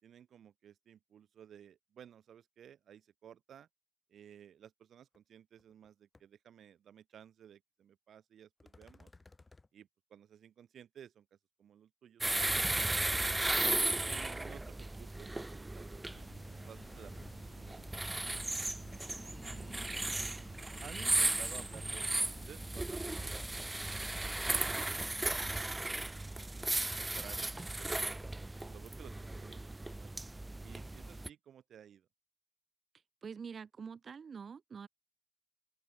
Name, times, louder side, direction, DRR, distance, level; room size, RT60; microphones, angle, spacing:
voice 1, 0.0-3.7 4.1-9.1 9.7-11.3 11.6-13.0 13.3-13.4 14.0-17.8 19.4-20.1 20.8-26.5 26.9-28.2 28.6-29.6 30.0-30.2 30.6-32.1, right 9 dB, 80° right, 4.6 m, -56 dB
sound 1, 5.1-5.2 5.6-5.9 6.1-6.2 8.6-9.7, left 3 dB, 35° left, 1.2 m, -59 dB
sound 2, 12.2-31.3, right 2 dB, 25° right, 0.5 m, -36 dB
sound 3, 16.0-23.8, left 12 dB, 90° left, 0.8 m, -60 dB
voice 2, 33.2-34.9, right 6 dB, 60° right, 1.3 m, -46 dB
supercardioid pair, 45°, 0 cm